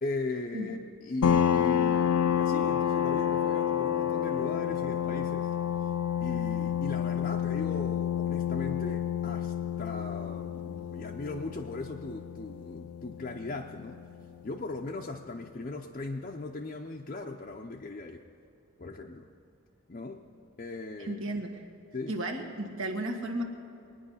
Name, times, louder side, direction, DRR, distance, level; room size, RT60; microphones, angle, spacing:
voice 1, 0.0-5.5 5.8-5.9 6.2-14.0 14.4-18.2 18.8-19.3 19.9-20.3 20.6-21.2 21.9-22.2, left 2 dB, 35° left, 1 dB, 0.5 m, -38 dB
sound 1, 1.2-14.5, left 9 dB, 85° left, 0.5 m, -29 dB
voice 2, 21.0-21.6 22.1-23.4, right 1 dB, 65° right, 3 dB, 1.6 m, -34 dB
22.0 x 9.7 x 5.6 m, 2.6 s
head